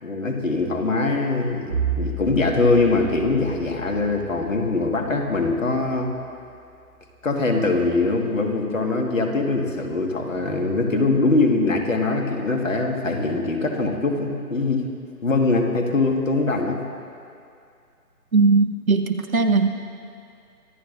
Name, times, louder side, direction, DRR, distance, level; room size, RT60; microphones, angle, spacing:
voice 1, 0.0-6.1 7.2-14.8 15.2-16.8, left 3 dB, 55° left, 2 dB, 1.8 m, -22 dB
Bowed string instrument, 1.7-6.3, right 5 dB, 45° right, 3.6 m, -33 dB
voice 2, 18.3-19.7, right 4 dB, 60° right, 7 dB, 1.2 m, -19 dB
24.5 x 14.0 x 2.6 m, 2.4 s
figure-of-eight pair, 160°, 46 cm